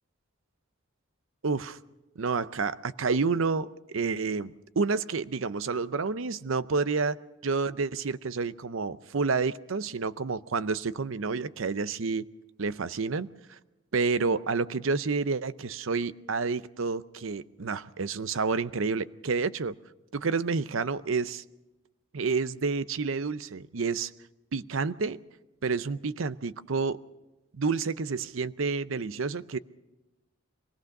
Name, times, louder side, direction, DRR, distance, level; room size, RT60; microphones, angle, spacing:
voice 1, 1.4-1.8 2.2-12.2 12.6-13.6 13.9-19.7 20.1-21.4 22.1-24.1 24.5-25.2 25.6-27.0 27.5-29.6, right 4 dB, 75° right, 15 dB, 0.6 m, -29 dB
23.5 x 17.5 x 6.5 m, 1.0 s
head